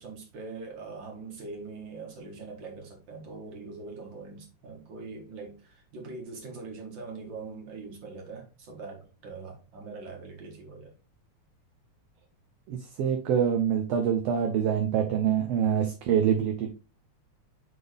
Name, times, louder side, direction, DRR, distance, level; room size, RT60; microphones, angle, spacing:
voice 1, 0.0-10.9, right 4 dB, 45° right, 1 dB, 2.2 m, -42 dB
voice 2, 12.7-16.7, right 8 dB, 70° right, 4 dB, 1.6 m, -25 dB
8.0 x 3.8 x 3.4 m, 0.33 s
omnidirectional pair, 3.4 m